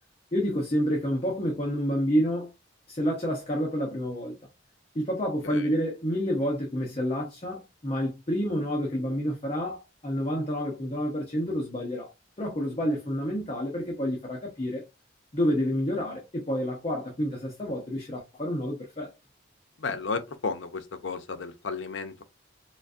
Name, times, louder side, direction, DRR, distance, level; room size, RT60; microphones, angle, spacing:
voice 1, 0.3-2.5 2.9-4.4 4.9-12.1 12.4-14.8 15.3-19.1, equal, 30° left, 0.7 m, -29 dB
voice 2, 19.8-22.2, left 4 dB, 75° left, 0.6 m, -33 dB
3.9 x 2.5 x 2.4 m
head